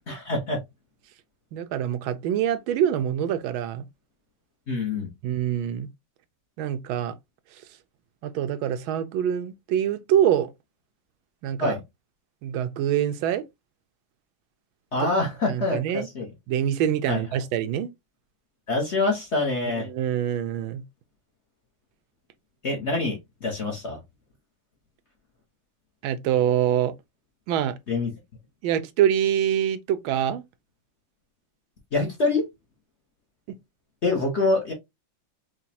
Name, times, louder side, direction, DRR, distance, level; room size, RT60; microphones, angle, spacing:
voice 1, 0.1-0.6 4.7-5.1 11.6-11.8 14.9-16.3 17.1-17.2 18.7-19.9 22.6-24.0 27.9-28.1 31.9-32.5 34.0-34.7, left 3 dB, 45° left, 0.9 m, -25 dB
voice 2, 1.5-3.8 5.2-5.9 6.6-7.1 8.2-10.5 11.4-11.8 12.4-13.4 15.0-15.1 15.5-16.1 16.5-17.9 19.7-20.8 26.0-26.9 27.5-27.7 28.6-30.4, right 10 dB, 90° right, 1.4 m, -25 dB
4.9 x 2.2 x 2.7 m
omnidirectional pair, 2.1 m